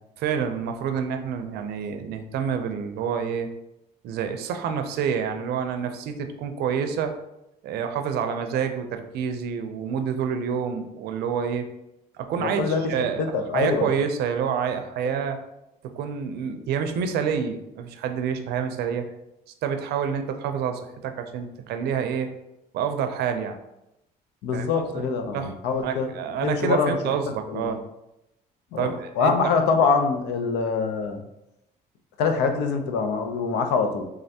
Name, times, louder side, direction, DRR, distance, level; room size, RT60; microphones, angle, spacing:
voice 1, 0.2-3.5 4.0-7.1 7.6-11.6 12.2-15.4 15.9-19.0 19.6-22.3 22.7-23.6 24.5-24.7 24.9-25.0 25.3-25.5 25.8-27.8 28.8-29.3, right 7 dB, 75° right, 7 dB, 0.5 m, -28 dB
voice 2, 12.4-12.8 13.2-13.9 24.4-26.1 26.4-27.0 27.5-27.7 28.7-31.2 32.2-34.0, left 5 dB, 85° left, 6 dB, 0.6 m, -24 dB
3.6 x 3.2 x 2.8 m, 0.87 s
cardioid pair, 110°, 17 cm